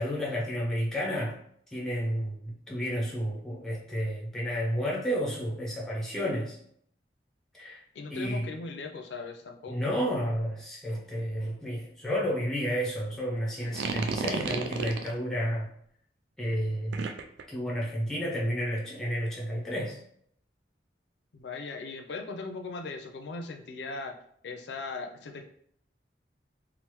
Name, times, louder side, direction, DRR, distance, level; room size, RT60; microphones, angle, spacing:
voice 1, 0.0-1.4 1.7-6.6 7.5-7.8 8.1-8.5 9.7-15.7 16.4-17.2 17.5-20.0, equal, 5° left, -4 dB, 0.5 m, -31 dB
voice 2, 7.9-9.9 21.3-24.2 24.4-25.4, left 3 dB, 80° left, 5 dB, 0.4 m, -39 dB
sound 1, 13.6-15.2 16.9-17.4, right 5 dB, 80° right, 0.3 m, -32 dB
3.1 x 2.0 x 3.0 m, 0.67 s
head